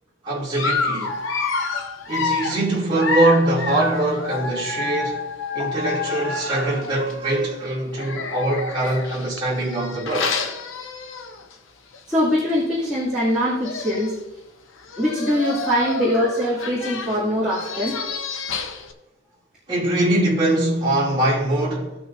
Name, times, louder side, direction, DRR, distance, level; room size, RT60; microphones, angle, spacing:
voice 1, 0.2-1.2 2.1-5.3 5.5-10.4 19.7-22.0, right 1 dB, 20° right, 2.9 m, -22 dB
Dog, 0.6-7.1 7.9-11.5 11.9-12.1 12.4-12.5 13.3-13.4 13.6-14.2 14.8-18.9, left 4 dB, 70° left, 0.8 m, -28 dB
voice 2, 12.1-14.1 15.0-18.0, equal, 5° right, 2.6 m, -22 dB
16.5 x 6.3 x 2.7 m
head